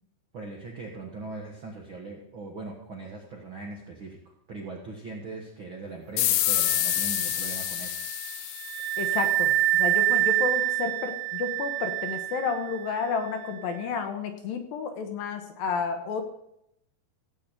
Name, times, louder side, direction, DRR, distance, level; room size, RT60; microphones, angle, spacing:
voice 1, 0.3-8.0, right 3 dB, 60° right, 0 dB, 1.3 m, -40 dB
sound 1, 6.2-9.5, left 14 dB, 90° left, 2.0 m, -28 dB
Wind instrument woodwind instrument, 6.5-13.9, right 15 dB, 85° right, 2.6 m, -28 dB
voice 2, 9.0-16.2, left 5 dB, 70° left, 6 dB, 2.5 m, -31 dB
16.0 x 8.3 x 4.4 m, 0.80 s
omnidirectional pair, 4.6 m